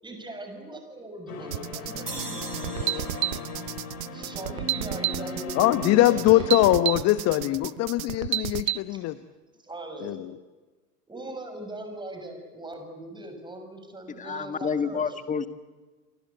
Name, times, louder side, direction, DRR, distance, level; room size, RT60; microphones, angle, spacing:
voice 1, 0.0-3.1 4.1-6.5 8.9-9.0 9.6-10.3 11.1-15.1, right 1 dB, 10° right, 5 dB, 6.7 m, -40 dB
sound 1, 1.3-6.8, left 3 dB, 70° left, 4.5 m, -37 dB
sound 2, 1.5-8.8, right 16 dB, 65° right, 0.8 m, -31 dB
sound 3, 2.1-5.3, right 3 dB, 90° right, 2.8 m, -43 dB
voice 2, 5.6-9.2 10.0-10.2, left 15 dB, 35° left, 13 dB, 1.0 m, -22 dB
voice 3, 14.2-15.5, left 6 dB, 15° left, 10 dB, 1.6 m, -29 dB
29.0 x 24.0 x 8.2 m, 1.3 s
figure-of-eight pair, 90°, 47 cm